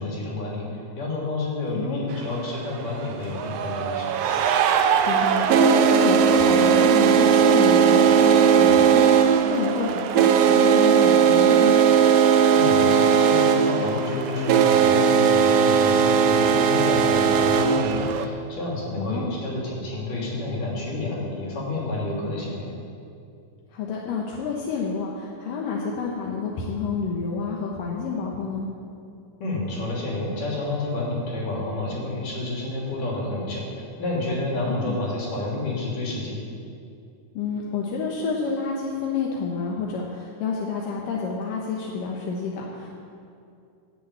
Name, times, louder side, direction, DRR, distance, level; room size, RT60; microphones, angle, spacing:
voice 1, 0.0-4.2 12.6-22.7 29.4-36.4, left 2 dB, 75° left, -4 dB, 4.6 m, -29 dB
voice 2, 1.7-2.1 5.1-11.9 19.0-19.3 23.7-28.7 34.7-35.0 37.3-42.9, left 5 dB, 90° left, -2 dB, 2.8 m, -29 dB
sound 1, 2.1-2.2 3.2-18.2, right 7 dB, 85° right, 1.4 m, -18 dB
16.5 x 7.0 x 8.5 m, 2.5 s
omnidirectional pair, 3.8 m